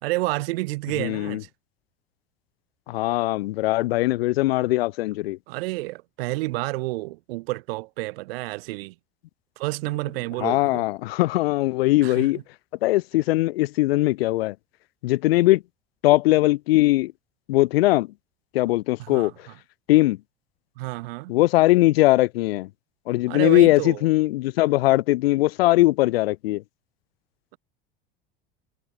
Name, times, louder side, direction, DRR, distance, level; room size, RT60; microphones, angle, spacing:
voice 1, 0.0-1.5 5.5-8.9 9.6-10.9 12.0-12.4 19.0-19.6 20.8-21.4 23.3-24.1, right 21 dB, 75° right, 3.7 m, -30 dB
voice 2, 1.0-1.4 2.9-5.4 10.4-12.4 12.8-14.5 15.0-15.6 16.0-17.1 17.5-18.1 18.5-19.3 19.9-20.2 21.3-22.7 23.1-26.6, left 18 dB, 85° left, 0.9 m, -20 dB
hypercardioid pair, 90°, 29 cm